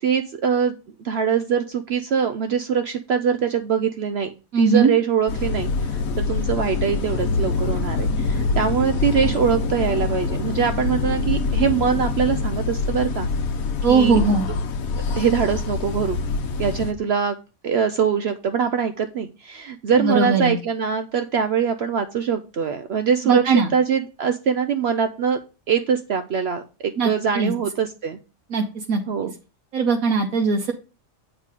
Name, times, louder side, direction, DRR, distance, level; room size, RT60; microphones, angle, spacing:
voice 1, 0.0-4.3 4.6-13.3 13.9-14.2 15.1-16.2 16.6-17.4 17.6-25.4 25.7-28.2 29.1-29.3, right 7 dB, 65° right, 8 dB, 0.7 m, -23 dB
voice 2, 4.5-4.9 13.8-14.5 20.0-20.6 23.2-23.7 27.0-27.5 28.5-29.0 29.7-30.7, right 4 dB, 80° right, 2 dB, 1.2 m, -19 dB
sound 1, 5.3-16.9, left 4 dB, 75° left, 1.2 m, -25 dB
8.2 x 3.7 x 4.8 m, 0.33 s
omnidirectional pair, 1.5 m